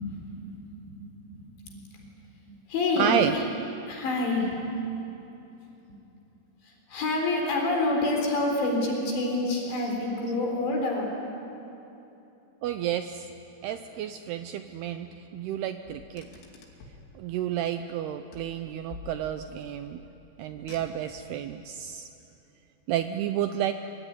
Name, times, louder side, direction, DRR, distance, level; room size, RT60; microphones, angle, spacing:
voice 1, 0.0-2.1 2.7-3.4 3.9-4.6 6.6-11.1, left 2 dB, 65° left, 0 dB, 6.1 m, -28 dB
voice 2, 3.0-3.4 12.6-13.3 13.6-16.3 17.2-20.0 20.4-22.1 22.9-23.7, right 11 dB, 85° right, 8 dB, 2.3 m, -30 dB
Car, 15.9-17.1 18.3-19.6 20.5-21.3, left 6 dB, 90° left, 5.2 m, -47 dB
24.5 x 24.5 x 9.8 m, 2.9 s
omnidirectional pair, 5.5 m